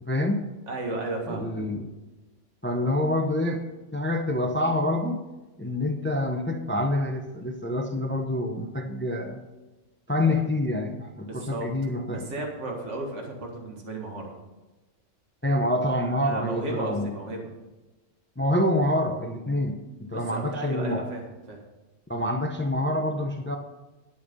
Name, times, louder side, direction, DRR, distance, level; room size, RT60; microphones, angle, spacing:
voice 1, 0.1-0.4 1.3-1.9 2.6-3.6 3.9-5.2 5.6-9.4 10.1-12.3 15.4-17.1 18.4-21.1 22.1-23.6, left 1 dB, 10° left, 5 dB, 0.7 m, -27 dB
voice 2, 0.7-1.4 10.2-10.4 11.2-11.7 12.1-14.3 16.2-17.5 20.1-21.6, right 2 dB, 70° right, 1 dB, 2.2 m, -34 dB
10.5 x 9.1 x 5.4 m, 1.1 s
omnidirectional pair, 1.3 m